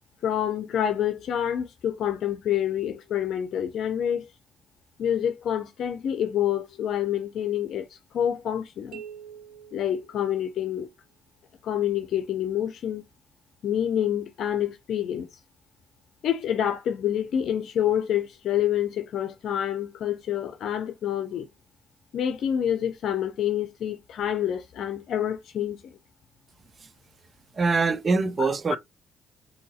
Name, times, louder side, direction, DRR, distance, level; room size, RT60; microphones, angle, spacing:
voice 1, 0.2-4.3 5.0-7.9 8.1-9.0 9.7-10.9 11.6-13.1 13.6-15.3 16.2-21.5 22.1-26.0 28.4-28.8, left 10 dB, 70° left, 0.6 m, -27 dB
sound 1, 8.9-10.9, right 8 dB, 80° right, 1.0 m, -45 dB
voice 2, 27.5-28.8, right 4 dB, 40° right, 0.5 m, -23 dB
3.8 x 2.8 x 4.1 m
cardioid pair, 90°, 0 cm